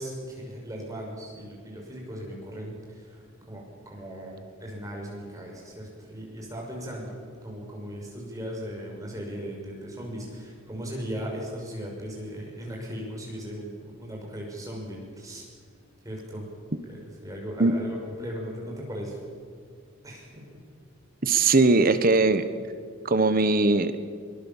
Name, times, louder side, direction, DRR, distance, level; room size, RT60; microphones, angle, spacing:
voice 1, 0.0-7.2 7.4-15.5 16.0-16.4 16.9-19.2 20.0-20.6, equal, 15° right, -1 dB, 6.1 m, -38 dB
voice 2, 21.2-22.5 23.0-23.9, right 3 dB, 40° right, 11 dB, 1.2 m, -20 dB
23.0 x 21.5 x 7.3 m, 2.2 s
head